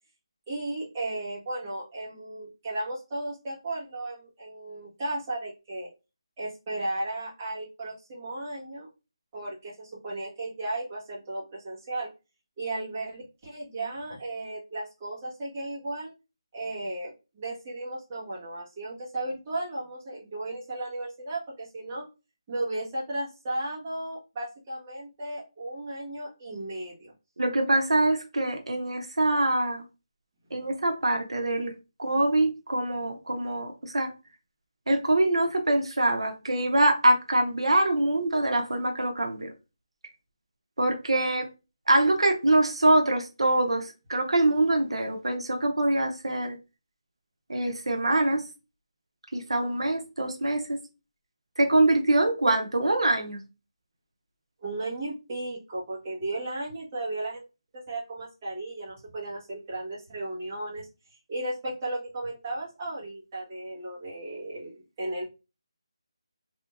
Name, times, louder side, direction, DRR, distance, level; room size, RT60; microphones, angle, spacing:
voice 1, 0.5-5.9 6.4-8.9 9.3-12.1 12.6-16.1 16.5-22.0 22.5-27.1 54.6-57.4 57.9-60.9 61.3-65.3, right 2 dB, 20° right, -7 dB, 1.4 m, -35 dB
voice 2, 27.4-29.8 30.5-31.7 32.0-34.1 34.9-39.5 40.8-41.5 41.9-46.6 47.5-48.4 49.3-50.8 51.6-53.4, right 2 dB, 85° right, 3 dB, 0.7 m, -24 dB
3.4 x 2.7 x 2.5 m, 0.29 s
figure-of-eight pair, 170°, 3 cm